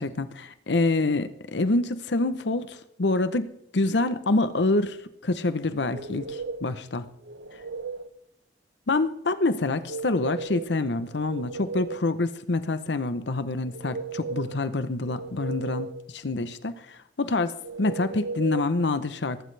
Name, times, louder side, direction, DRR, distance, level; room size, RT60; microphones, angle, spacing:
voice 1, 0.0-5.0 5.2-7.0 8.9-17.5 17.8-19.4, left 2 dB, 80° left, 12 dB, 0.8 m, -26 dB
sound 1, 5.9-6.8 7.2-8.1 9.7-10.7 11.0-12.1 13.6-14.6 15.0-16.0 17.6-18.7, right 4 dB, 80° right, 1.0 m, -36 dB
17.5 x 15.5 x 3.4 m, 0.77 s
head